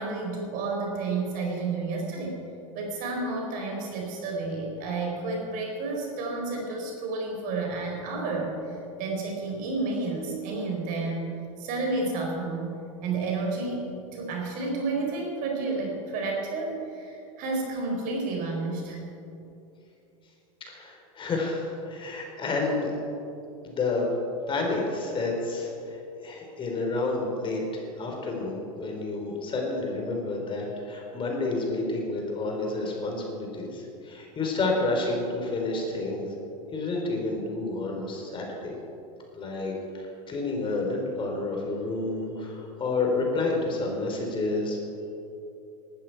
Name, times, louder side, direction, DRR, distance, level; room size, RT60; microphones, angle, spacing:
voice 1, 0.0-2.4 2.7-11.3 11.6-19.0, right 3 dB, 50° right, 0 dB, 4.4 m, -31 dB
voice 2, 20.6-23.0 23.6-24.1 24.5-36.3 36.7-38.8 39.3-44.8, left 3 dB, 30° left, 1 dB, 3.7 m, -30 dB
19.0 x 12.5 x 4.6 m, 2.8 s
hypercardioid pair, 95°, 18 cm